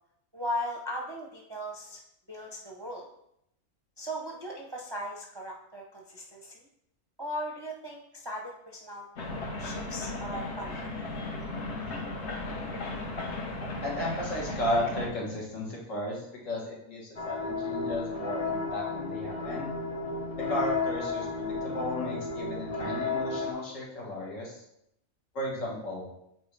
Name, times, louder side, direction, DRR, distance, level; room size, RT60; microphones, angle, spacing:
voice 1, 0.3-2.0 2.3-3.1 4.0-6.7 7.2-9.1 9.4-10.9, equal, 30° right, 0 dB, 0.5 m, -38 dB
sound 1, 9.2-15.1, left 2 dB, 60° left, 1.3 m, -36 dB
voice 2, 13.8-19.7 20.5-24.6 25.3-26.1, left 1 dB, 75° left, -3 dB, 2.0 m, -34 dB
sound 2, 17.2-23.5, left 3 dB, 30° left, 0.9 m, -33 dB
7.8 x 4.4 x 3.3 m, 0.78 s
omnidirectional pair, 1.3 m